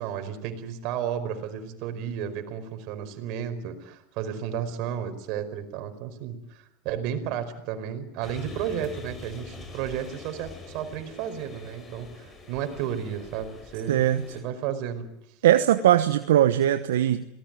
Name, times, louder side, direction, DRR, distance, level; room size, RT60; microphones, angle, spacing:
voice 1, 0.0-14.0 14.3-15.1, right 9 dB, 60° right, 8 dB, 4.9 m, -33 dB
sound 1, 8.2-14.4, left 2 dB, 25° left, 7.1 m, -44 dB
voice 2, 13.9-14.2 15.4-17.3, right 12 dB, 80° right, 9 dB, 1.1 m, -20 dB
26.5 x 19.0 x 9.2 m, 0.83 s
hypercardioid pair, 100°, 0 cm